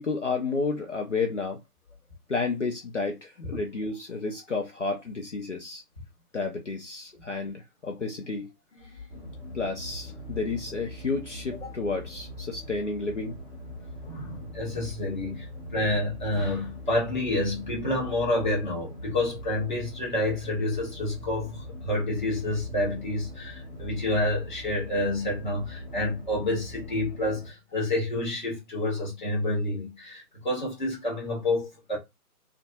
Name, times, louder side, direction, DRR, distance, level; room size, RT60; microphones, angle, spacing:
voice 1, 0.0-1.6 2.3-5.8 6.3-8.5 9.5-13.4, left 4 dB, 50° left, 0.6 m, -31 dB
sound 1, 9.1-27.5, left 1 dB, ahead, 0.6 m, -42 dB
voice 2, 14.0-32.0, left 1 dB, 30° left, 1.0 m, -29 dB
2.5 x 2.2 x 2.5 m
figure-of-eight pair, 155°, 46 cm